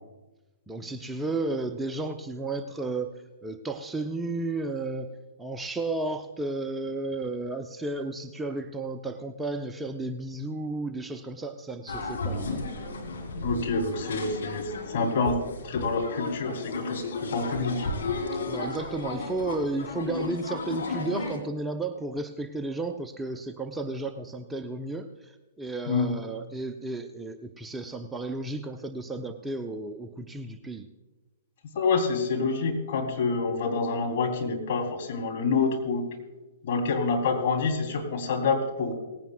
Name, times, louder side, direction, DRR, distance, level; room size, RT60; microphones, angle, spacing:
voice 1, 0.7-3.1 3.4-5.1 5.4-12.6 18.3-30.9, right 2 dB, 10° right, 6 dB, 0.6 m, -33 dB
sound 1, 11.9-21.4, left 3 dB, 65° left, 2.6 m, -34 dB
voice 2, 13.3-15.4 15.6-17.9 25.9-26.1 31.7-36.0 36.6-38.9, left 4 dB, 50° left, 1 dB, 3.1 m, -27 dB
18.5 x 16.0 x 2.3 m, 1.1 s
figure-of-eight pair, 115°, 0 cm